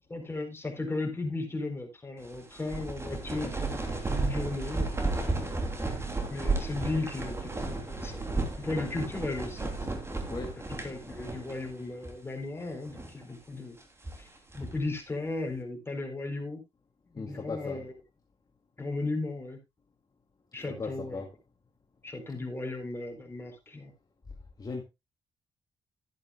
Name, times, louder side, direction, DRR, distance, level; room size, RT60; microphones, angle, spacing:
voice 1, 0.1-4.9 6.3-9.9 10.8-13.8 14.2-16.6 17.1-17.9 18.8-19.6 20.5-21.2 22.0-23.9, left 2 dB, 20° left, 4.0 m, -36 dB
sound 1, 2.2-11.8 12.0-12.1 12.7-13.2 13.8-14.9, right 3 dB, 25° right, 3.0 m, -33 dB
voice 2, 10.3-10.6 17.1-17.8 20.7-21.3 24.6-24.8, left 4 dB, 35° left, 2.4 m, -37 dB
12.5 x 11.0 x 2.4 m
cardioid pair, 75°, 11 cm